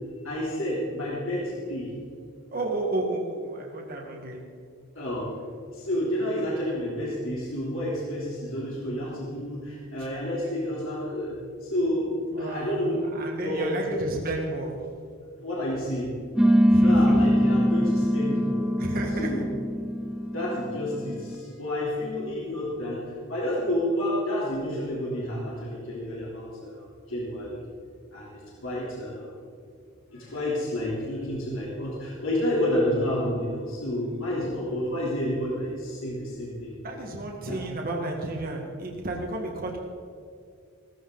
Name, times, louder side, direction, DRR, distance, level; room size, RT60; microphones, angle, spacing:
voice 1, 0.2-1.9 4.9-5.3 5.7-11.3 11.6-12.1 12.4-13.0 13.4-14.0 15.4-16.1 16.7-18.6 19.2-19.4 20.3-23.0 23.3-27.6 28.1-29.4 30.1-36.7 37.5-37.6, left 1 dB, 65° left, -6 dB, 3.3 m, -30 dB
voice 2, 2.5-4.4 12.3-14.8 16.7-17.3 18.8-19.3 36.8-39.8, right 2 dB, 45° right, 0 dB, 1.7 m, -32 dB
sound 1, 16.4-21.3, equal, 5° right, 0.5 m, -22 dB
16.0 x 14.5 x 3.9 m, 2.3 s
head